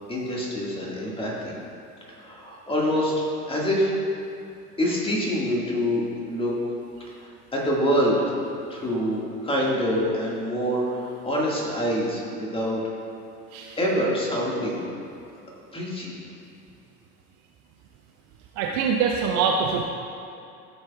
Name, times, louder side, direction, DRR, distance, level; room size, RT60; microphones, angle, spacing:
voice 1, 0.1-1.5 2.2-3.1 3.5-3.9 4.8-6.5 7.2-8.3 8.7-12.8 13.8-14.8 15.7-16.1, equal, 10° left, -4 dB, 1.9 m, -25 dB
voice 2, 18.6-19.8, right 6 dB, 40° right, 1 dB, 0.6 m, -24 dB
14.5 x 6.4 x 2.4 m, 2.7 s
figure-of-eight pair, 80°, 46 cm